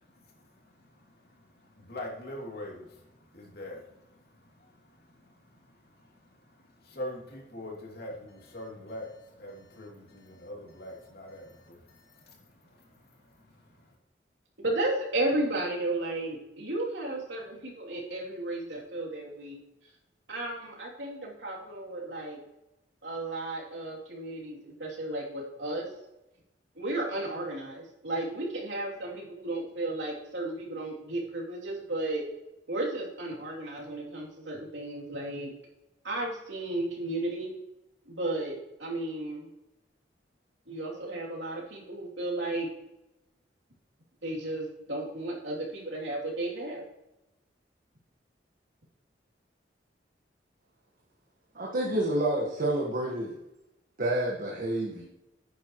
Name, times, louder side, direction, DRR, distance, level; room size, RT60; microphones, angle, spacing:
voice 1, 0.0-13.9, left 1 dB, 60° left, -1 dB, 2.9 m, -44 dB
voice 2, 14.6-19.6 20.3-22.4 23.0-25.9 26.7-32.2 32.7-35.5 36.0-37.5 38.1-39.5 40.7-42.7 44.2-46.8, right 2 dB, 90° right, -2 dB, 3.1 m, -34 dB
voice 3, 51.6-53.3 54.0-55.0, right 1 dB, 50° right, -2 dB, 1.7 m, -29 dB
10.5 x 8.9 x 3.2 m, 0.94 s
head